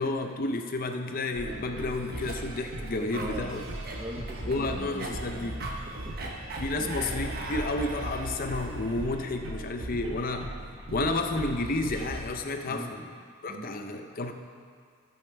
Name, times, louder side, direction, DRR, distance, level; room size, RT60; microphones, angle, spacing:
voice 1, 0.0-3.6 4.5-5.6 6.6-10.5 10.9-13.0 13.4-14.3, left 2 dB, 40° left, 5 dB, 0.6 m, -31 dB
sound 1, 1.3-12.3, right 1 dB, 65° right, 1.0 m, -38 dB
Cough, 1.9-8.5, right 2 dB, 45° right, 1.1 m, -41 dB
voice 2, 3.1-3.6 3.9-5.3 5.5-6.4 6.8-7.0 12.7-13.0 13.5-13.7, right 1 dB, 25° right, 2 dB, 0.8 m, -42 dB
15.0 x 8.5 x 3.4 m, 2.1 s
head